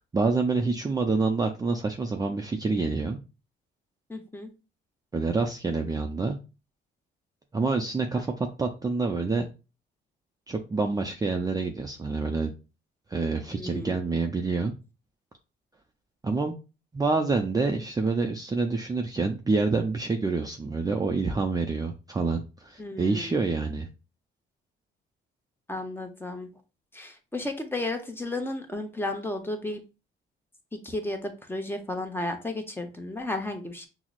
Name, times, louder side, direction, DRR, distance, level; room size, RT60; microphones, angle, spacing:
voice 1, 0.0-3.2 5.1-6.4 7.5-9.5 10.5-12.5 13.1-14.7 16.2-16.5 16.9-23.9, right 3 dB, 20° right, 4 dB, 0.4 m, -27 dB
voice 2, 4.1-4.5 13.5-14.0 22.8-23.4 25.7-26.5 26.9-29.8 30.7-33.9, left 2 dB, 10° left, 5 dB, 0.7 m, -33 dB
5.7 x 2.0 x 2.4 m, 0.31 s
cardioid pair, 90°, 20 cm